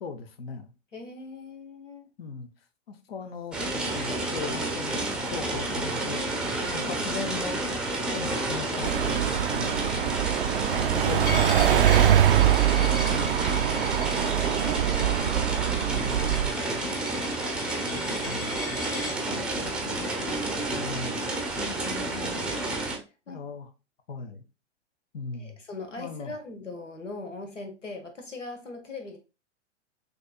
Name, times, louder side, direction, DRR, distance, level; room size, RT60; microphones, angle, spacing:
voice 1, 0.0-0.7 2.2-2.5 2.9-6.2 6.7-7.6 8.1-12.0 12.7-14.2 15.9-16.5 18.2-18.6 20.7-21.3 23.3-23.7 24.1-24.4 25.1-25.6 26.0-26.3, left 4 dB, 55° left, 0.9 m, -38 dB
voice 2, 0.9-2.1 3.2-3.3 6.7-7.3 10.6-10.8 15.6-16.1 16.4-17.5 17.9-20.7 21.6-22.6 23.3-23.4 25.4-29.2, left 2 dB, 80° left, 1.3 m, -42 dB
sound 1, 3.5-23.0, right 2 dB, ahead, 0.7 m, -30 dB
sound 2, 8.8-16.5, right 11 dB, 50° right, 0.4 m, -24 dB
Coin (dropping), 11.3-19.2, left 4 dB, 20° left, 0.3 m, -39 dB
6.3 x 2.9 x 2.3 m
figure-of-eight pair, 105°, 36 cm